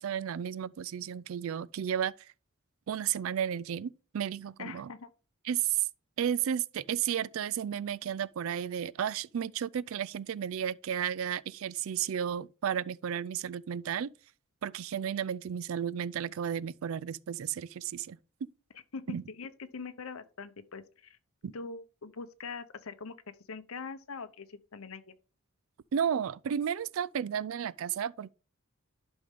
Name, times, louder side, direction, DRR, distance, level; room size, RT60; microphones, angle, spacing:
voice 1, 0.0-2.3 2.9-4.9 5.4-5.9 6.2-14.1 14.6-18.5 19.1-19.2 21.4-21.5 25.9-28.3, right 8 dB, 70° right, 0.4 m, -33 dB
voice 2, 4.6-5.1 18.7-21.2 21.5-25.2, left 4 dB, 75° left, 0.8 m, -43 dB
11.5 x 5.4 x 3.5 m
head